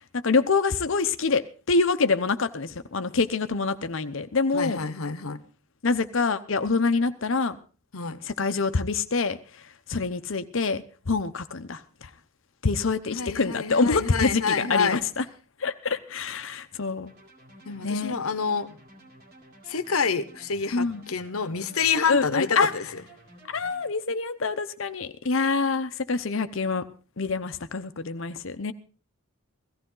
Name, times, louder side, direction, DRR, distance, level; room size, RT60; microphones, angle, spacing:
voice 1, 0.1-1.4 1.7-4.8 5.8-7.6 8.2-9.6 9.9-12.1 12.6-15.2 15.6-17.1 17.8-18.1 20.7-21.1 22.1-22.7 23.5-26.8 27.2-28.7, left 4 dB, 65° left, 11 dB, 0.8 m, -26 dB
voice 2, 4.5-5.4 7.9-8.2 13.1-15.0 17.6-18.7 19.7-22.8, left 5 dB, 90° left, 13 dB, 1.0 m, -27 dB
sound 1, 17.1-23.9, right 1 dB, 50° right, 2.6 m, -52 dB
16.5 x 14.5 x 3.9 m, 0.36 s
head